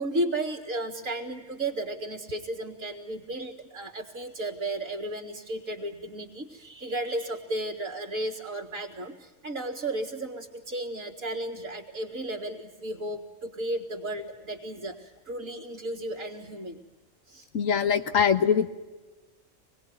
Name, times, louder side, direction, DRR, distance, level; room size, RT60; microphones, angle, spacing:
voice 1, 0.0-16.8 17.3-17.5, right 1 dB, 80° right, -4 dB, 2.8 m, -34 dB
voice 2, 17.5-18.7, left 7 dB, 80° left, 9 dB, 1.7 m, -22 dB
26.5 x 20.5 x 9.5 m, 1.2 s
omnidirectional pair, 1.4 m